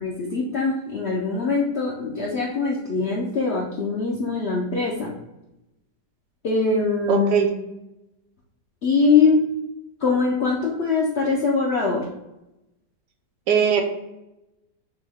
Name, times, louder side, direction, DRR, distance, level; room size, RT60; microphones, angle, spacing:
voice 1, 0.0-5.1 6.4-7.4 8.8-9.5 10.0-12.1, left 4 dB, 65° left, -2 dB, 0.6 m, -22 dB
voice 2, 7.1-7.5 13.5-13.8, right 7 dB, 80° right, 3 dB, 1.3 m, -19 dB
6.2 x 2.2 x 3.4 m, 0.91 s
omnidirectional pair, 1.9 m